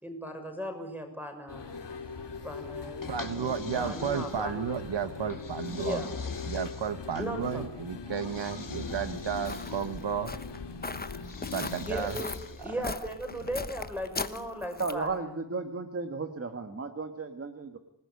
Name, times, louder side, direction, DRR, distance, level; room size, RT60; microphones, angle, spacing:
voice 1, 0.0-1.8 2.4-4.7 5.8-6.1 7.2-7.7 11.9-15.1, equal, 5° right, 5 dB, 6.5 m, -37 dB
sound 1, 1.5-11.9, left 5 dB, 65° left, 3.0 m, -41 dB
sound 2, 3.0-4.7 5.3-7.3 8.1-10.0 11.2-12.8, left 5 dB, 45° left, 2.5 m, -41 dB
voice 2, 3.0-6.0 6.5-10.3 11.5-12.2 12.7-12.8, right 8 dB, 70° right, 11 dB, 1.3 m, -33 dB
Walk footsteps, 8.9-15.1, left 3 dB, 20° left, 1.1 m, -39 dB
voice 3, 14.8-17.8, right 4 dB, 30° right, 6 dB, 1.8 m, -34 dB
26.5 x 20.0 x 9.8 m, 0.81 s
wide cardioid pair, 130°, 45 cm